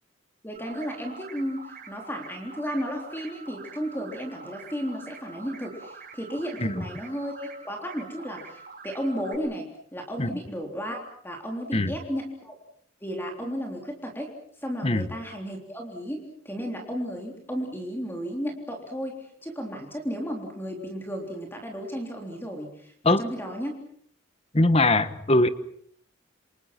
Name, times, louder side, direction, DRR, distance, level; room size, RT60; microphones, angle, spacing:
voice 1, 0.4-12.6 13.0-14.3 14.6-23.8, equal, 10° left, 2 dB, 3.6 m, -34 dB
sound 1, 0.6-9.4, right 5 dB, 40° right, 7.4 m, -46 dB
voice 2, 24.5-25.5, left 2 dB, 30° left, 12 dB, 1.3 m, -21 dB
28.5 x 26.5 x 5.9 m, 0.64 s
head